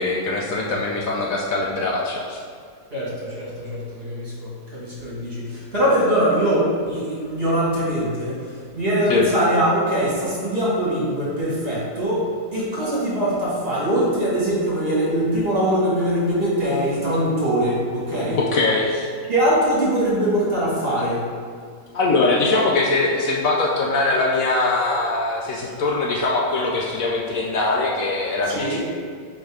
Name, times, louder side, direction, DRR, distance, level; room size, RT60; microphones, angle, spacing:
voice 1, 0.0-2.4 9.1-9.3 18.3-19.1 21.9-28.8, left 3 dB, 65° left, -2 dB, 0.8 m, -22 dB
voice 2, 2.9-18.4 19.3-21.3 28.4-28.8, right 1 dB, 35° right, -7 dB, 1.7 m, -22 dB
5.4 x 3.5 x 4.9 m, 2.1 s
omnidirectional pair, 2.0 m